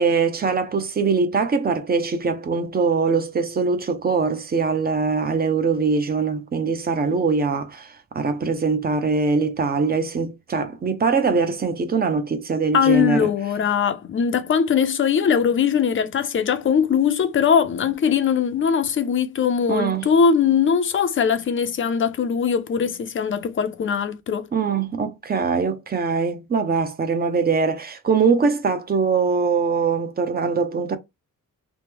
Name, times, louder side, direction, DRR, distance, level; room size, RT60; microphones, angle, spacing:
voice 1, 0.0-13.3 19.7-20.1 24.5-31.0, right 4 dB, 30° right, 0.5 m, -22 dB
voice 2, 12.7-24.5, left 7 dB, 40° left, 0.4 m, -21 dB
3.0 x 2.1 x 3.4 m
wide cardioid pair, 165°, 33 cm